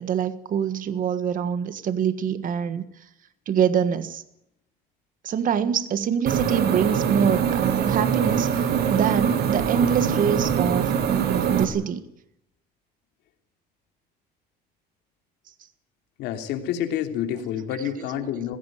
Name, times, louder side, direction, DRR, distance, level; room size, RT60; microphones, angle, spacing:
voice 1, 0.0-3.0 3.5-4.2 5.2-12.0 18.0-18.1, right 8 dB, 55° right, 12 dB, 1.6 m, -25 dB
sound 1, 6.3-11.6, right 7 dB, 70° right, 2.6 m, -23 dB
voice 2, 16.2-18.6, left 10 dB, 90° left, 5 dB, 3.1 m, -28 dB
21.0 x 16.5 x 9.3 m, 0.83 s
cardioid pair, 110°, 17 cm